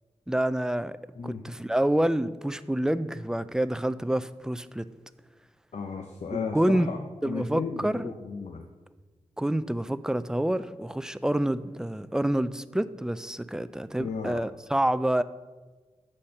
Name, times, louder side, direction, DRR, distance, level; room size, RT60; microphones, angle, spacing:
voice 1, 0.3-1.0 1.2-4.9 6.5-6.9 7.2-8.1 9.4-15.2, right 1 dB, 5° right, 14 dB, 0.3 m, -27 dB
voice 2, 1.2-1.5 5.7-8.7 14.0-14.4, left 5 dB, 75° left, 4 dB, 0.7 m, -35 dB
8.5 x 4.3 x 6.4 m, 1.3 s
wide cardioid pair, 85°, 12 cm